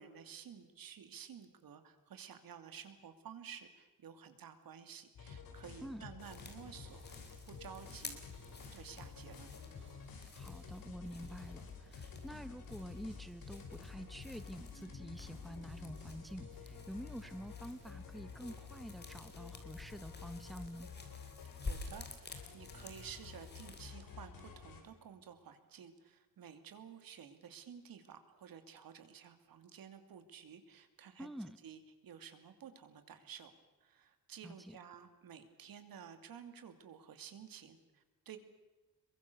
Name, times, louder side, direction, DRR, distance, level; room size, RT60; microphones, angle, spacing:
voice 1, 0.0-8.2 8.7-9.5 21.6-31.3 31.6-33.5 33.8-38.4, right 8 dB, 85° right, 8 dB, 2.8 m, -53 dB
sound 1, 5.1-24.8, left 6 dB, 85° left, 5.1 m, -51 dB
sound 2, 6.2-23.9, left 3 dB, 30° left, 3.9 m, -52 dB
sound 3, 6.5-18.2, right 3 dB, 35° right, 7.0 m, -63 dB
voice 2, 10.3-20.9 31.2-31.6 34.4-34.8, equal, ahead, 11 dB, 1.0 m, -48 dB
27.0 x 23.0 x 6.9 m, 1.1 s
wide cardioid pair, 150°, 34 cm